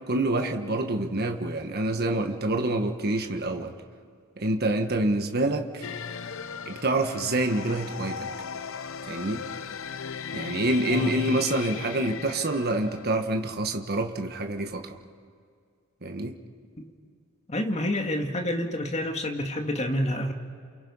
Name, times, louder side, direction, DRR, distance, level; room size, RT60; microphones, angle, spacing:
voice 1, 0.1-3.7 4.4-5.9 6.7-8.3 9.1-9.4 10.3-15.0 16.0-16.3, right 2 dB, 45° right, 5 dB, 1.5 m, -27 dB
sound 1, 5.8-13.3, left 6 dB, 65° left, 0.7 m, -37 dB
voice 2, 17.5-20.3, left 1 dB, 30° left, 3 dB, 2.0 m, -28 dB
29.0 x 28.0 x 5.6 m, 2.2 s
head